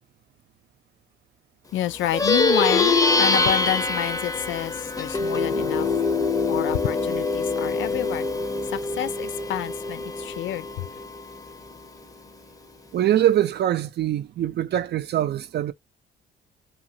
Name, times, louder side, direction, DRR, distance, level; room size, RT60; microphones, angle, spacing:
voice 1, 1.7-5.9 6.5-8.3 8.7-10.9, left 12 dB, 75° left, 0.4 m, -29 dB
Plucked string instrument, 2.0-11.7, left 3 dB, 15° left, 0.6 m, -24 dB
voice 2, 12.9-15.7, right 12 dB, 55° right, 0.5 m, -23 dB
2.8 x 2.4 x 2.7 m
cardioid pair, 90°, 20 cm